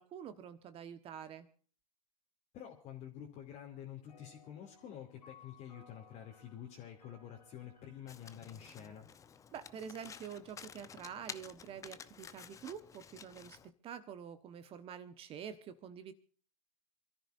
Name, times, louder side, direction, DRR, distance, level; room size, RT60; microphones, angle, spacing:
voice 1, 0.0-1.5 9.5-13.6 13.8-16.1, right 8 dB, 25° right, 10 dB, 1.2 m, -47 dB
voice 2, 2.5-9.1, left 10 dB, 30° left, -2 dB, 2.8 m, -49 dB
sound 1, 4.1-9.8, left 5 dB, 75° left, 4.6 m, -63 dB
Domestic sounds home sounds, 8.1-13.7, left 7 dB, 15° left, 0.7 m, -52 dB
27.5 x 14.0 x 2.6 m, 0.40 s
figure-of-eight pair, 105°, 21 cm